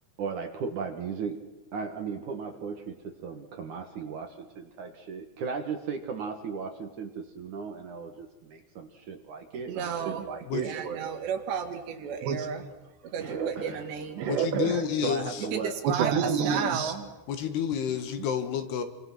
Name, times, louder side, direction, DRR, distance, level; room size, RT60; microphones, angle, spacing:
voice 1, 0.2-1.4 1.7-10.1 13.1-13.9 15.0-15.8 18.2-18.3, right 5 dB, 60° right, 5 dB, 2.4 m, -36 dB
voice 2, 9.7-12.7 13.1-14.8 15.5-17.1, right 7 dB, 75° right, 6 dB, 4.1 m, -30 dB
voice 3, 14.3-15.4 17.3-18.8, left 8 dB, 70° left, 8 dB, 3.5 m, -30 dB
28.5 x 25.0 x 6.0 m, 1.2 s
omnidirectional pair, 5.0 m